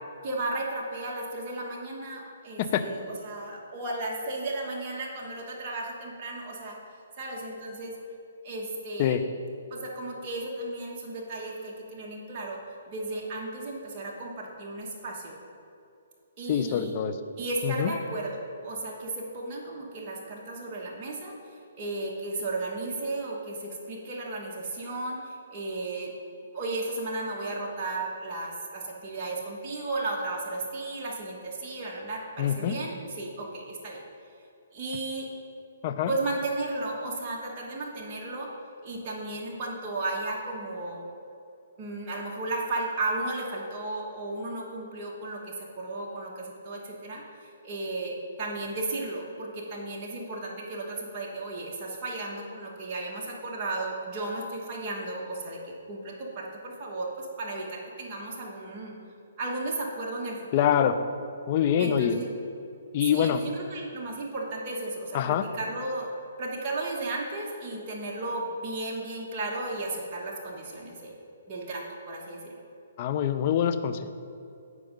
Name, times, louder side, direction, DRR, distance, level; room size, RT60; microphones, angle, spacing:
voice 1, 0.2-6.8 7.2-7.9 8.4-9.2 9.7-12.6 12.9-15.4 16.4-16.9 17.4-21.4 21.7-26.1 26.5-34.0 34.7-35.3 36.1-38.5 38.8-41.1 41.8-58.9 59.4-60.4 61.8-62.3 63.1-66.1 66.4-71.1 71.5-72.5, right 2 dB, 30° right, -3 dB, 1.2 m, -34 dB
voice 2, 16.5-17.1 17.6-17.9 32.4-32.8 35.8-36.1 60.5-61.0 61.5-62.2 62.9-63.4 65.1-65.5 73.0-74.1, left 9 dB, 40° left, 9 dB, 0.5 m, -25 dB
9.5 x 4.8 x 5.2 m, 2.6 s
hypercardioid pair, 150°, 0 cm